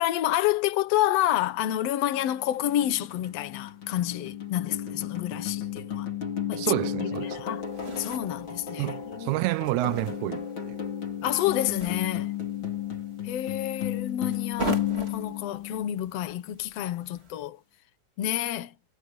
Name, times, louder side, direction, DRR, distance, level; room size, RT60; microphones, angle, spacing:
voice 1, 0.0-6.1 6.5-6.8 7.2-7.6 8.0-9.3 11.2-12.3 13.2-17.6 18.2-18.7, left 13 dB, 65° left, 2.1 m, -29 dB
sound 1, 2.1-16.3, left 9 dB, 40° left, 4.2 m, -34 dB
voice 2, 6.6-7.4 8.8-10.8, right 17 dB, 80° right, 2.1 m, -29 dB
sound 2, 7.1-17.5, right 3 dB, 20° right, 2.7 m, -42 dB
omnidirectional pair, 3.4 m